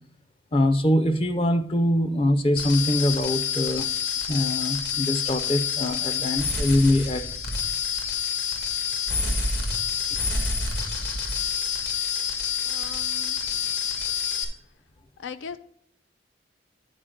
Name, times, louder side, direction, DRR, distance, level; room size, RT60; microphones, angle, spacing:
voice 1, 0.5-3.9 4.3-7.3, left 1 dB, 30° left, 0.5 m, -23 dB
sound 1, 2.6-14.4, left 6 dB, 60° left, 1.6 m, -28 dB
voice 2, 12.6-13.8 15.2-15.6, left 6 dB, 85° left, 0.4 m, -40 dB
10.0 x 4.5 x 5.0 m
head